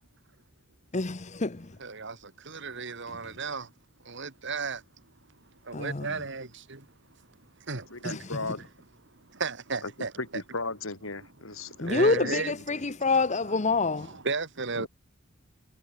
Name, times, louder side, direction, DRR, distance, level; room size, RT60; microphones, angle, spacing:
voice 1, 0.9-1.7 5.7-6.1 8.0-8.4 11.8-14.1, left 3 dB, 35° left, 1.0 m, -27 dB
voice 2, 1.8-3.7 4.0-4.8 5.6-6.9 7.6-8.5 9.1-10.4 11.5-13.0 13.4-14.9, right 4 dB, 60° right, 2.2 m, -35 dB
voice 3, 7.9-8.6 9.8-9.9 10.2-12.5 14.8-14.9, left 3 dB, 85° left, 6.5 m, -36 dB
head